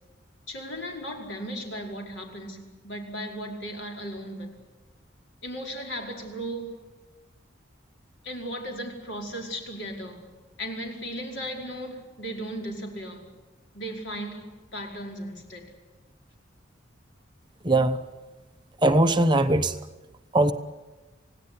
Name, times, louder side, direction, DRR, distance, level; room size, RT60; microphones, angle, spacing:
voice 1, 0.5-4.5 5.4-6.8 8.2-10.3 10.6-13.3 13.7-15.7, equal, 65° left, 1 dB, 5.2 m, -36 dB
voice 2, 17.6-18.0 18.8-19.7 20.3-20.5, right 1 dB, 25° right, 8 dB, 0.9 m, -20 dB
28.0 x 17.5 x 9.8 m, 1.2 s
head